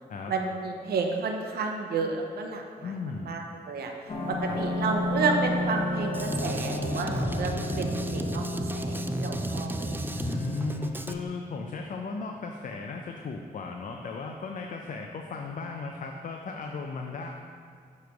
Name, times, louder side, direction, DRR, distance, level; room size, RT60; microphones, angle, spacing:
voice 1, 0.3-2.9 3.2-3.9 4.4-8.4 8.7-10.2, right 4 dB, 80° right, 2 dB, 0.6 m, -31 dB
voice 2, 2.8-3.3 4.5-4.6 10.1-17.3, left 4 dB, 55° left, 2 dB, 0.5 m, -36 dB
sound 1, 4.1-11.2, left 2 dB, 35° left, 1.0 m, -32 dB
Drum kit, 6.1-11.1, right 2 dB, 15° right, 0.3 m, -33 dB
7.1 x 3.2 x 4.6 m, 2.1 s
cardioid pair, 70°, 16 cm